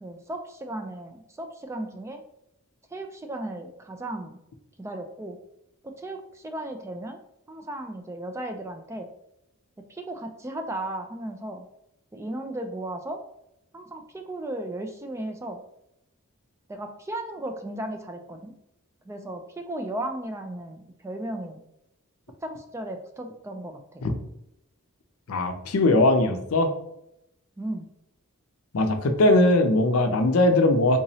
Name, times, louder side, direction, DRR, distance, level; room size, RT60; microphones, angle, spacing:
voice 1, 0.0-2.2 2.9-4.4 4.8-5.4 5.8-7.2 7.5-9.1 9.9-11.6 12.1-13.2 13.7-15.6 16.7-18.5 19.0-21.6 22.4-24.0 27.6-27.9, right 1 dB, 15° right, 5 dB, 0.3 m, -35 dB
voice 2, 25.3-26.7 28.7-31.0, left 2 dB, 70° left, 6 dB, 0.5 m, -20 dB
3.6 x 3.0 x 2.7 m, 0.81 s
head